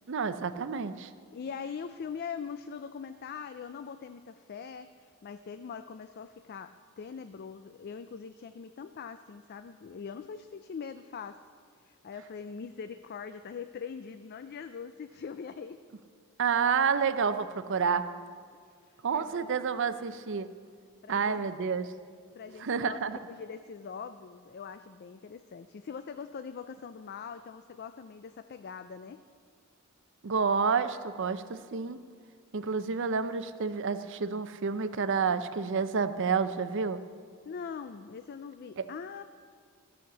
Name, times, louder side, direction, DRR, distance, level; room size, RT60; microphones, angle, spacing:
voice 1, 0.1-1.1 16.4-18.1 19.0-20.5 21.1-21.9 22.6-23.2 30.2-32.0 32.5-37.0, right 5 dB, 55° right, 12 dB, 0.6 m, -29 dB
voice 2, 1.3-4.9 5.2-11.4 11.8-15.8 18.9-19.6 21.0-21.4 22.3-29.3 37.4-39.2, left 6 dB, 45° left, 10 dB, 0.3 m, -42 dB
14.5 x 6.4 x 7.1 m, 2.1 s
head